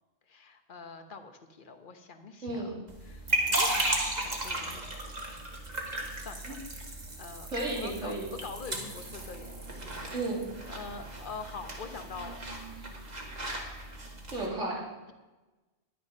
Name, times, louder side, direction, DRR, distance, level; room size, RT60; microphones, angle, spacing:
voice 1, 0.3-2.7 3.0-3.9 4.2-4.9 5.8-7.5 7.7-10.1 10.7-12.4, left 5 dB, 45° left, 7 dB, 1.2 m, -45 dB
voice 2, 2.4-2.8 6.4-6.5 7.5-8.3 10.1-10.5 12.8-13.0 14.3-14.8, right 2 dB, 85° right, -4 dB, 3.3 m, -33 dB
sound 1, 2.9-14.5, right 1 dB, 35° right, 1.8 m, -35 dB
11.0 x 10.0 x 5.3 m, 1.2 s
omnidirectional pair, 1.2 m